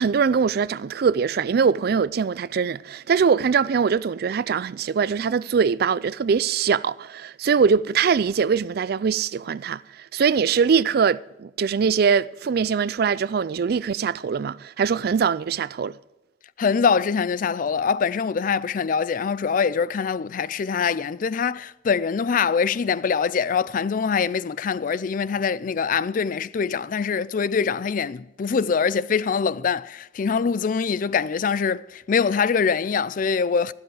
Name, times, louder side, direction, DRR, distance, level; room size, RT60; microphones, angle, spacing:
voice 1, 0.0-9.8 10.1-15.9, right 6 dB, 60° right, 0.4 m, -22 dB
voice 2, 16.6-33.7, left 6 dB, 50° left, 0.4 m, -24 dB
13.5 x 12.0 x 4.9 m
head